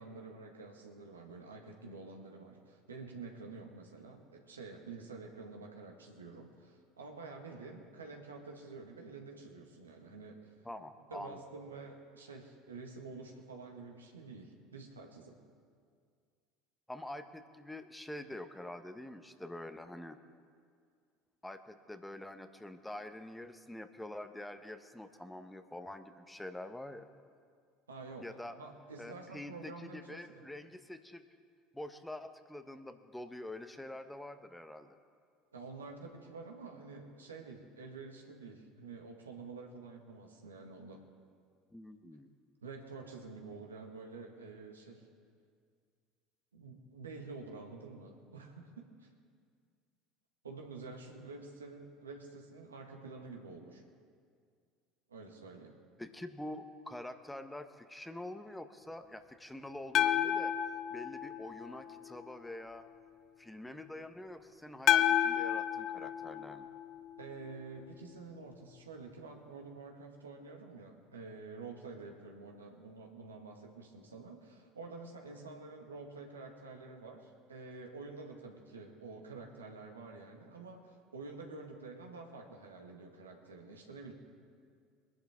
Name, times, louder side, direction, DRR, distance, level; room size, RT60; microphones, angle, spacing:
voice 1, 0.0-10.5 11.1-15.4 27.9-30.4 35.5-41.0 42.6-45.0 46.5-48.7 49.0-49.1 50.4-53.8 55.1-55.7 67.2-84.1, right 3 dB, 90° right, 1 dB, 1.6 m, -48 dB
voice 2, 10.6-11.4 16.9-20.2 21.4-27.1 28.2-28.6 29.0-31.2 31.7-34.9 41.7-42.3 56.0-60.6 60.9-62.8 63.4-66.7, left 1 dB, 5° left, 9 dB, 1.0 m, -46 dB
sound 1, 59.9-62.1 64.9-67.2, left 10 dB, 50° left, 0.7 m, -31 dB
21.5 x 11.0 x 3.6 m, 2.1 s
hypercardioid pair, 70°, 0 cm